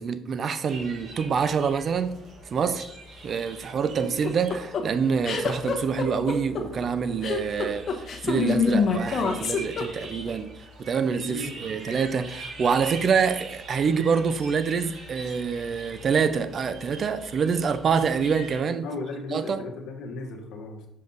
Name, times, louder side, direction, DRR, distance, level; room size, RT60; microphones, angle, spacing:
voice 1, 0.0-2.1 2.5-2.9 3.2-10.5 10.8-18.9 19.3-19.6, right 6 dB, 50° right, 0.6 m, -26 dB
sound 1, 0.6-18.6, right 1 dB, 65° right, 2.4 m, -43 dB
sound 2, 4.0-10.3, left 5 dB, 50° left, 1.2 m, -26 dB
voice 2, 11.2-11.7 18.8-20.9, left 2 dB, 75° left, 1.2 m, -36 dB
6.5 x 5.4 x 4.0 m
cardioid pair, 85°, 0 cm